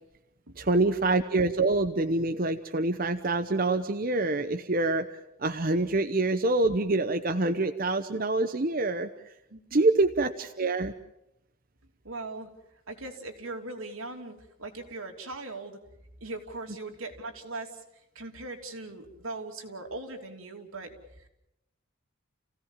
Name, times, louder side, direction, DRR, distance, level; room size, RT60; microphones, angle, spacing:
voice 1, 0.6-5.1 5.4-9.1 9.7-10.9, right 2 dB, 45° right, 8 dB, 0.9 m, -26 dB
voice 2, 9.5-9.9 12.0-12.5 12.9-15.8 16.2-17.8 18.1-21.3, right 2 dB, 90° right, 3 dB, 3.1 m, -40 dB
29.5 x 16.5 x 7.3 m, 0.85 s
head